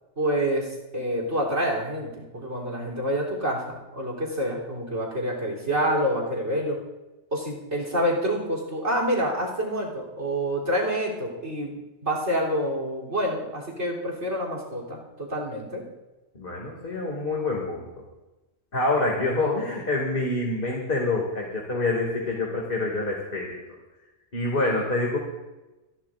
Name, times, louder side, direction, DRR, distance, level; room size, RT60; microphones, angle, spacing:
voice 1, 0.2-6.8 7.3-11.8 12.0-15.9, equal, 75° right, -1 dB, 3.7 m, -27 dB
voice 2, 16.3-17.9 18.7-23.6 24.3-25.2, left 2 dB, 50° left, -2 dB, 2.5 m, -26 dB
29.0 x 12.0 x 2.5 m, 1.1 s
omnidirectional pair, 1.2 m